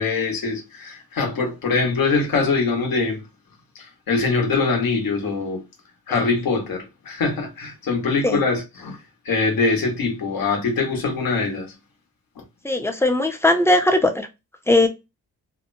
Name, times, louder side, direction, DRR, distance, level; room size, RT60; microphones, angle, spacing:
voice 1, 0.0-3.2 3.7-5.6 6.1-9.0 9.2-11.7, left 4 dB, 70° left, 1.1 m, -23 dB
voice 2, 12.6-14.3 14.7-14.9, left 1 dB, 5° left, 0.5 m, -18 dB
2.8 x 2.1 x 2.6 m
cardioid pair, 105°, 37 cm